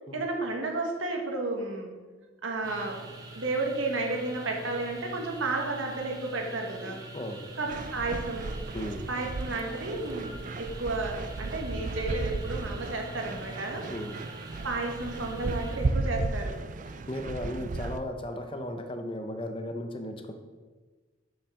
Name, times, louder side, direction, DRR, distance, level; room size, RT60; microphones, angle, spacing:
voice 1, 0.1-1.9 2.4-3.0 3.3-7.0 7.6-8.5 9.1-13.9 14.6-16.5 17.8-17.9, right 2 dB, 80° right, 2 dB, 1.5 m, -32 dB
sound 1, 2.6-15.9, right 2 dB, 20° right, 0.8 m, -44 dB
voice 2, 6.8-7.5 8.7-9.1 13.8-14.2 16.9-20.3, left 1 dB, 25° left, 6 dB, 0.6 m, -36 dB
sound 2, 7.7-18.0, right 3 dB, 40° right, 0.3 m, -35 dB
7.0 x 5.5 x 5.6 m, 1.3 s
head